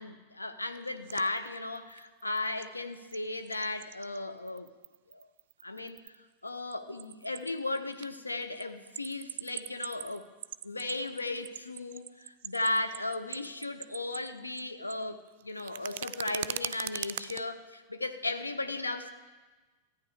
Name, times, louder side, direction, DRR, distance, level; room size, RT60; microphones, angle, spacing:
voice 1, 0.0-4.7 5.1-5.3 5.6-6.2 6.4-10.3 10.6-19.1, left 2 dB, 80° left, 9 dB, 0.6 m, -36 dB
sound 1, 0.7-2.7 2.9-4.2 4.5-6.2 6.5-8.1 8.4-14.6 14.9-17.5, right 13 dB, 55° right, 0.3 m, -41 dB
14.0 x 9.1 x 5.0 m, 1.3 s
figure-of-eight pair, 90°, 0 cm